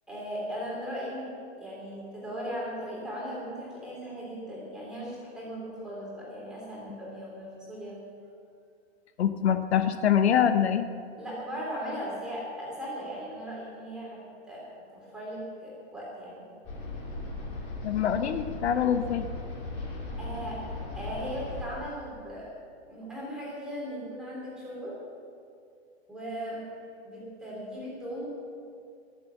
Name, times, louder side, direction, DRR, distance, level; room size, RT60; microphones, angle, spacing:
voice 1, 0.1-1.3 1.6-8.0 11.2-14.2 14.5-14.6 14.9-16.5 20.2-20.6 21.0-22.5 22.9-24.9 26.1-26.6 27.0-28.3, equal, ahead, -6 dB, 3.5 m, -38 dB
voice 2, 9.2-10.9 17.8-19.3, left 9 dB, 80° left, 9 dB, 1.0 m, -24 dB
sound 1, 16.6-21.6, left 2 dB, 25° left, 3.0 m, -37 dB
22.5 x 7.7 x 7.1 m, 2.3 s
hypercardioid pair, 175°, 32 cm